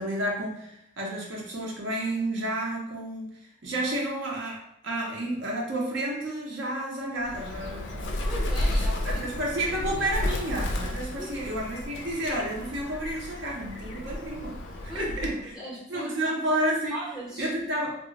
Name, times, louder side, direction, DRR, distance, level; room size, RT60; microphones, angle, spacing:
voice 1, 0.0-8.2 8.7-14.6 14.8-15.5 15.9-17.0 17.4-17.9, right 1 dB, 55° right, -2 dB, 0.6 m, -31 dB
Bird, 7.2-15.5, left 1 dB, 55° left, 0.4 m, -32 dB
voice 2, 8.2-9.2 11.2-11.3 14.9-16.3 16.9-17.5, equal, 5° right, -7 dB, 0.7 m, -38 dB
2.3 x 2.0 x 3.8 m, 0.76 s
head